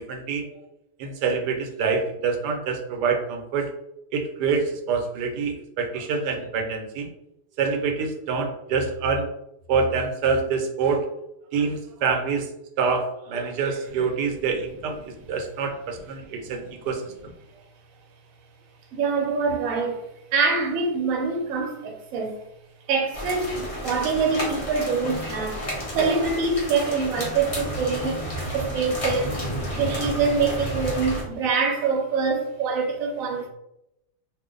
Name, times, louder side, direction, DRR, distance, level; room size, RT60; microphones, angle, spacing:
voice 1, 0.1-0.4 1.0-3.7 4.1-7.1 7.6-9.3 9.7-11.1 11.5-12.5 12.8-17.0, right 5 dB, 90° right, 1.2 m, -26 dB
voice 2, 18.9-20.0 20.3-22.4 22.9-25.6 25.9-28.2 28.5-29.4 29.7-33.5, right 4 dB, 65° right, 1.0 m, -25 dB
sound 1, 23.1-31.2, equal, 35° left, 0.5 m, -31 dB
2.5 x 2.5 x 3.7 m
omnidirectional pair, 1.7 m